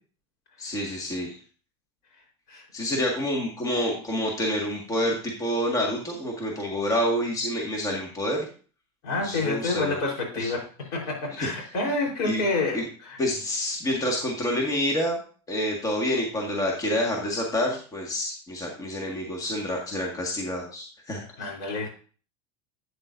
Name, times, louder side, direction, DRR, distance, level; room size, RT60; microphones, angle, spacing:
voice 1, 0.6-1.4 2.7-8.4 9.2-10.0 10.3-10.5 11.4-11.5 12.3-12.4 12.7-12.8 13.2-15.2 15.5-21.2, equal, 25° left, -1 dB, 1.9 m, -28 dB
voice 2, 9.0-10.6 10.9-13.2 21.4-21.9, left 3 dB, 70° left, -1 dB, 3.9 m, -28 dB
8.9 x 7.5 x 2.6 m, 0.40 s
supercardioid pair, 120°, 13 cm